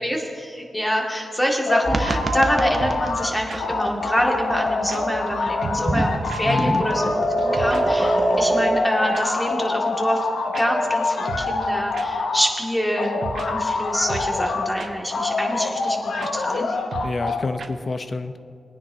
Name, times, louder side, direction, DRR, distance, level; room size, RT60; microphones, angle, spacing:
voice 1, 0.0-7.1 7.4-10.2 10.6-13.2 13.5-16.8, equal, 10° left, 0 dB, 2.1 m, -25 dB
sound 1, 1.7-3.3 3.6-12.5 12.9-14.7 15.1-17.4, left 3 dB, 80° left, 0.9 m, -26 dB
sound 2, 1.7-2.2 2.4-2.5 2.8-3.2 3.5-3.6 3.8-3.9 4.2-4.3 4.6-4.7 4.9-5.0 5.3-5.4 5.6-6.0 6.3-6.4 6.7-6.8 7.0-7.1 7.4-7.8 8.1-8.2 9.1-9.2 9.5-9.6 9.9-10.0 10.2-10.3 10.5-10.7 10.9-11.0 11.3-11.7 11.9-12.1 12.3-12.4 12.7-12.8 13.0-13.5 13.7-13.8 14.1-14.5 14.8-14.9 15.1-15.2 15.5-15.6 15.9-16.0 16.2-16.3 16.6-16.7 16.9-17.3 17.6-17.7, right 4 dB, 70° right, 0.9 m, -35 dB
sound 3, 1.9-8.8, right 2 dB, 30° right, 1.0 m, -26 dB
voice 2, 6.4-6.9 17.0-18.4, left 3 dB, 45° left, 9 dB, 0.8 m, -28 dB
21.0 x 9.7 x 2.8 m, 2.4 s
cardioid pair, 70°, 0 cm